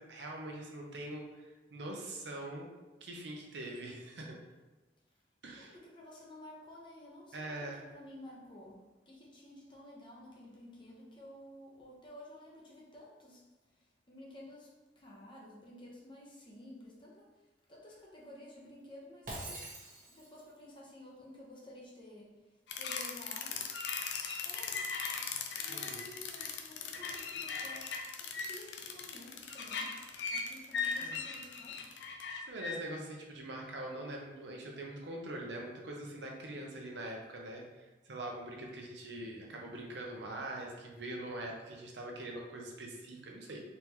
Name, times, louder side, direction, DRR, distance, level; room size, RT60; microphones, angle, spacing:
voice 1, 0.0-2.7 3.0-4.4 5.4-5.7 7.3-7.8 25.7-26.1 31.0-31.2 32.5-43.6, right 1 dB, 80° right, 0 dB, 0.8 m, -43 dB
voice 2, 5.6-7.5 7.7-8.8 9.1-13.4 14.1-17.3 17.7-19.6 20.1-22.3 22.8-23.6 24.4-24.9 25.6-31.8, left 1 dB, 30° left, -4 dB, 1.0 m, -52 dB
Shatter, 19.3-20.5, right 2 dB, 50° right, 1.2 m, -44 dB
sound 1, 22.7-32.8, left 5 dB, 80° left, 0.5 m, -38 dB
4.1 x 3.8 x 3.0 m, 1.2 s
head